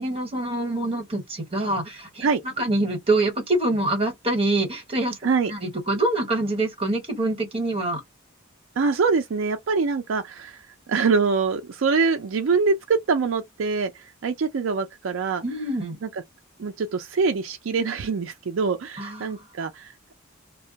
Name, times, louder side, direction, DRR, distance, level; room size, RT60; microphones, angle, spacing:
voice 1, 0.0-5.2 5.5-8.0 15.4-16.0 19.0-19.3, right 2 dB, 30° right, 1.2 m, -25 dB
voice 2, 8.8-13.9 14.2-15.4 16.0-16.1 16.6-20.1, right 4 dB, 70° right, 0.4 m, -24 dB
2.3 x 2.1 x 2.7 m
head